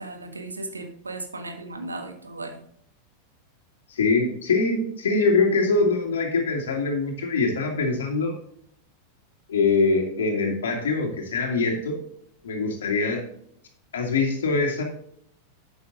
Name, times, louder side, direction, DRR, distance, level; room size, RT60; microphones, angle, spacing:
voice 1, 0.0-2.6, right 2 dB, 80° right, 6 dB, 1.6 m, -36 dB
voice 2, 3.9-8.4 9.5-12.0 12.4-13.2 13.9-14.8, left 3 dB, 65° left, 1 dB, 2.6 m, -23 dB
11.5 x 8.7 x 2.7 m, 0.67 s
figure-of-eight pair, 90°, 0 cm